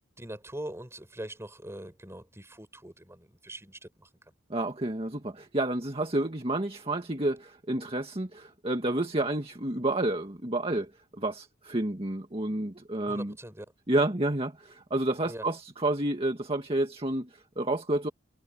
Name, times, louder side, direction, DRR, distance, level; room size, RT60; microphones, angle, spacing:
voice 1, 0.2-4.3 13.1-13.6 15.2-15.5, right 1 dB, 15° right, 5.1 m, -42 dB
voice 2, 4.5-13.3 13.9-18.1, right 1 dB, 30° right, 1.9 m, -30 dB
head